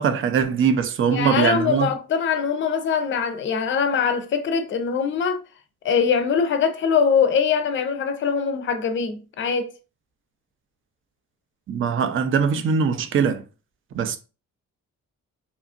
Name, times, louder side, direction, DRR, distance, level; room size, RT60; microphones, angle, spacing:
voice 1, 0.0-1.9 11.7-13.4 13.9-14.2, right 6 dB, 45° right, 0.4 m, -21 dB
voice 2, 1.1-5.4 5.8-9.7, left 6 dB, 40° left, 0.5 m, -22 dB
2.8 x 2.4 x 2.4 m
cardioid pair, 90°, 30 cm